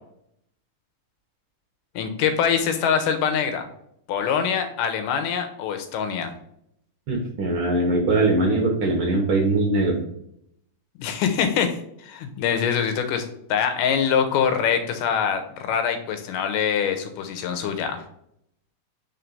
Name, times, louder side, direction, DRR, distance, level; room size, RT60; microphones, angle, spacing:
voice 1, 2.0-3.7 4.1-6.3 11.0-18.0, left 7 dB, 80° left, 7 dB, 2.4 m, -24 dB
voice 2, 7.1-9.9, right 2 dB, 65° right, 1 dB, 1.4 m, -21 dB
4.5 x 4.5 x 5.3 m, 0.72 s
omnidirectional pair, 3.7 m